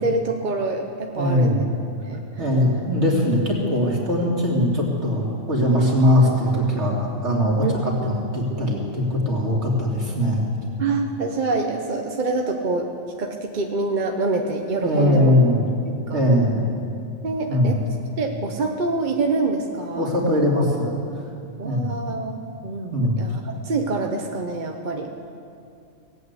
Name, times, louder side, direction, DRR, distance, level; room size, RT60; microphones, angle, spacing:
voice 1, 0.0-1.6 2.1-2.2 3.2-3.4 3.8-3.9 7.6-7.8 10.8-12.9 13.2-15.3 16.1-16.2 17.2-17.8 18.2-20.1 21.6-25.1, right 3 dB, 40° right, 3 dB, 0.9 m, -26 dB
voice 2, 1.2-1.7 2.4-10.4 14.8-15.6 16.1-16.6 17.5-17.7 20.0-20.9 21.6-21.9 22.9-23.2, left 1 dB, 60° right, -3 dB, 2.9 m, -20 dB
17.5 x 8.6 x 8.1 m, 2.5 s
omnidirectional pair, 1.3 m